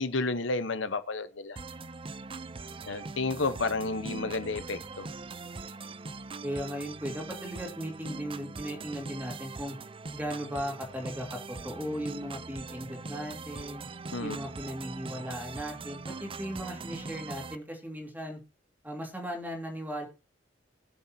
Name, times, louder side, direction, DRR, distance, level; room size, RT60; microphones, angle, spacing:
voice 1, 0.0-1.6 2.9-5.1 14.1-14.4, left 3 dB, 90° left, 1.1 m, -31 dB
sound 1, 1.6-17.6, right 3 dB, 30° right, 0.6 m, -41 dB
voice 2, 6.4-9.8 10.1-13.9 14.2-18.4 18.8-20.1, equal, 10° right, 3.2 m, -37 dB
21.0 x 7.4 x 2.8 m
head